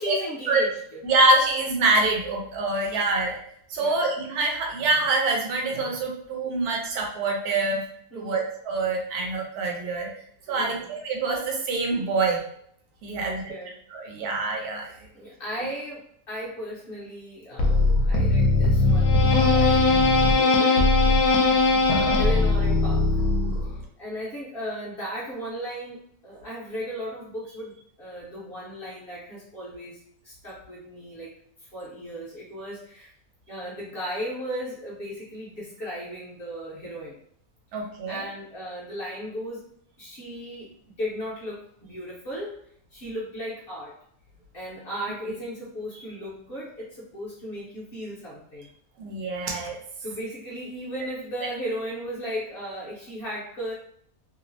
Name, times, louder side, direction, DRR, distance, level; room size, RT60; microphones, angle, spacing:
voice 1, 0.0-1.0 3.8-4.1 8.1-8.4 10.6-10.9 13.2-13.8 15.1-20.8 21.3-21.8 22.1-23.2 23.7-30.0 30.2-31.3 31.6-33.1 33.5-37.2 38.1-42.6 42.9-44.0 44.5-48.7 50.0-53.7, equal, 50° left, -6 dB, 0.8 m, -36 dB
voice 2, 1.0-3.4 3.7-7.8 8.1-10.1 10.5-12.4 13.0-13.5 13.9-14.9 37.7-38.2 49.0-49.8 51.4-51.5, right 3 dB, 85° right, 1 dB, 1.2 m, -25 dB
sound 1, 17.6-23.8, left 3 dB, 80° left, 1.1 m, -20 dB
2.9 x 2.0 x 2.5 m, 0.65 s
omnidirectional pair, 1.6 m